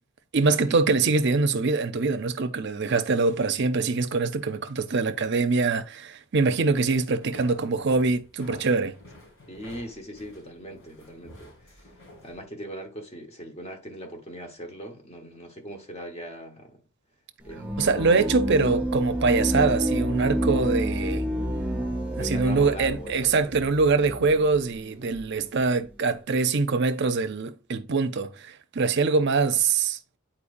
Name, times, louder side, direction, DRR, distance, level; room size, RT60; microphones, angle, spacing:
voice 1, 0.3-8.9 17.8-21.2 22.2-30.0, right 4 dB, 55° right, 0.6 m, -24 dB
sound 1, 7.2-12.4, left 1 dB, 65° left, 2.9 m, -49 dB
voice 2, 9.5-12.0 12.2-16.8 17.4-18.2 22.1-23.5, right 1 dB, 30° left, 1.2 m, -40 dB
sound 2, 17.5-24.6, right 1 dB, 5° right, 0.8 m, -29 dB
8.5 x 4.4 x 2.6 m
head